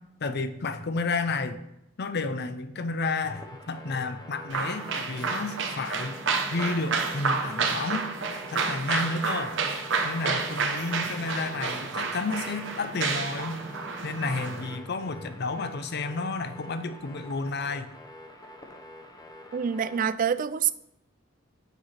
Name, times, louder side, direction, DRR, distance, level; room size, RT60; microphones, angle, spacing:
voice 1, 0.2-1.6 2.0-6.2 6.5-8.1 8.5-9.5 10.0-13.6 14.0-17.9, left 3 dB, 55° left, 0.6 m, -31 dB
sound 1, 3.3-20.0, left 1 dB, 20° left, 0.8 m, -47 dB
sound 2, 4.5-14.8, right 4 dB, 65° right, 1.0 m, -30 dB
voice 2, 19.5-20.7, right 7 dB, 45° right, 0.4 m, -26 dB
6.7 x 4.8 x 5.7 m
head